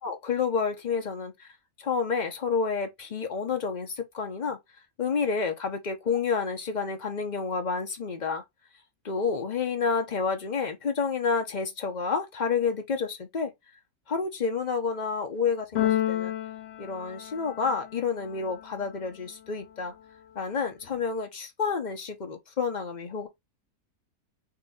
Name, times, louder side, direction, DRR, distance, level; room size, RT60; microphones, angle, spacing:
voice 1, 0.0-1.5 1.8-4.6 5.0-8.4 9.0-13.5 14.1-16.3 16.8-19.9 20.3-23.3, left 5 dB, 40° left, 0.6 m, -29 dB
Keyboard (musical), 15.8-17.9, left 13 dB, 85° left, 0.5 m, -29 dB
4.1 x 2.7 x 3.8 m
omnidirectional pair, 1.7 m